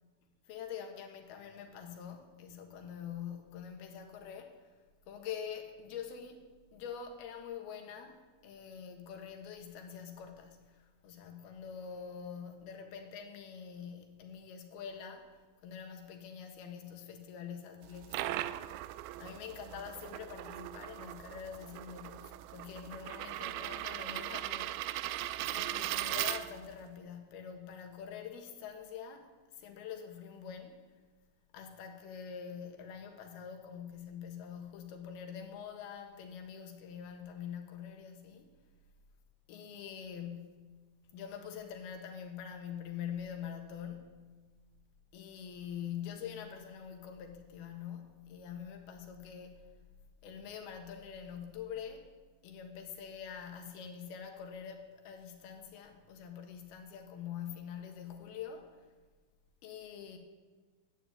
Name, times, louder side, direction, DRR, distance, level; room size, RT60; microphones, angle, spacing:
voice 1, 0.5-4.7 5.1-6.4 6.7-15.3 15.6-18.5 19.2-25.0 25.5-29.3 29.6-30.8 31.5-38.5 39.5-40.7 41.1-44.3 45.1-49.7 50.2-52.0 52.4-58.7 59.6-60.2, left 8 dB, 85° left, 4 dB, 3.3 m, -45 dB
sound 1, 17.8-26.8, right 15 dB, 85° right, 2.4 m, -39 dB
12.0 x 9.1 x 8.3 m, 1.4 s
omnidirectional pair, 4.3 m